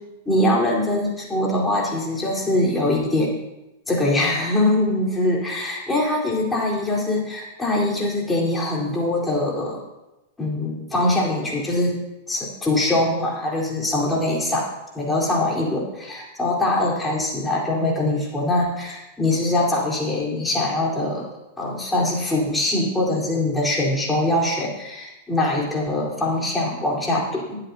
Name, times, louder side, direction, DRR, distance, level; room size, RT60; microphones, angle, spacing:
voice 1, 0.2-3.4 3.9-9.8 10.4-12.0 12.3-21.3 21.6-27.6, left 1 dB, 10° left, -4 dB, 4.5 m, -23 dB
23.0 x 11.0 x 2.9 m, 0.98 s
figure-of-eight pair, 95°, 0 cm